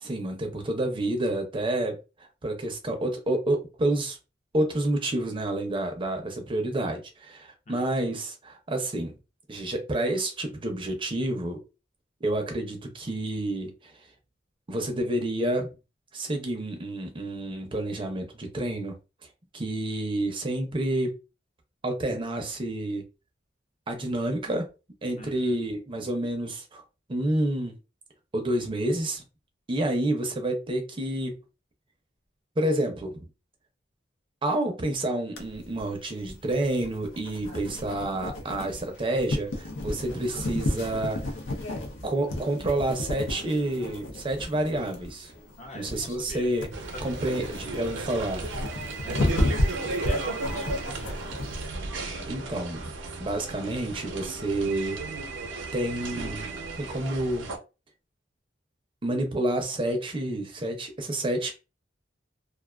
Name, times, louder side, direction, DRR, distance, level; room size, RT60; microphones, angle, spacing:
voice 1, 0.0-4.2 4.5-9.2 9.5-11.6 12.2-13.9 14.7-15.7 16.1-19.0 19.5-21.2 21.8-23.0 23.9-24.7 25.0-26.8 27.1-27.7 28.3-29.2 29.7-31.3 32.6-33.3 34.4-41.4 42.0-45.3 45.7-46.7 47.0-48.5 52.3-52.9 53.2-55.2 55.7-56.5 56.8-57.5 59.0-61.6, right 1 dB, 30° right, 0.5 m, -29 dB
voice 2, 25.2-25.6 45.6-46.5 46.9-47.4 49.0-51.1, left 1 dB, 40° left, 0.6 m, -44 dB
sound 1, 35.4-51.7, left 1 dB, 80° left, 0.6 m, -32 dB
sound 2, 46.7-57.6, right 3 dB, 90° right, 0.6 m, -35 dB
2.4 x 2.2 x 2.3 m
head